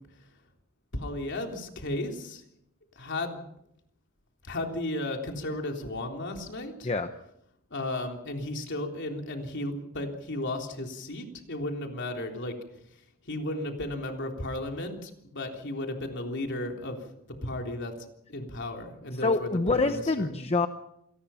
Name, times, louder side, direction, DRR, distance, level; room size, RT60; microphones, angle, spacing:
voice 1, 0.9-2.4 3.0-3.5 4.4-6.9 7.7-12.6 13.3-17.0 17.4-20.3, left 1 dB, 55° left, 3 dB, 3.6 m, -34 dB
voice 2, 19.1-20.7, left 3 dB, 30° left, 8 dB, 0.9 m, -26 dB
27.0 x 19.0 x 5.8 m, 0.76 s
head